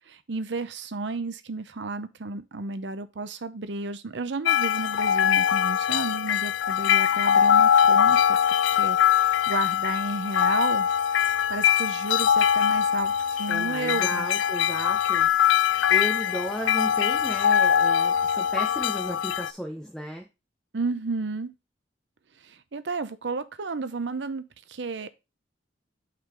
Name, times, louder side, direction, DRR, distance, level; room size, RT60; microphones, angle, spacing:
voice 1, 0.0-8.4 8.7-10.9 11.5-13.1 13.4-14.3 20.7-21.5 22.4-24.4 24.7-25.1, right 3 dB, 70° right, 0.6 m, -32 dB
sound 1, 4.5-19.5, left 8 dB, 85° left, 0.3 m, -22 dB
voice 2, 13.5-15.3 15.9-20.3, equal, ahead, 0.7 m, -34 dB
5.7 x 3.8 x 4.9 m
head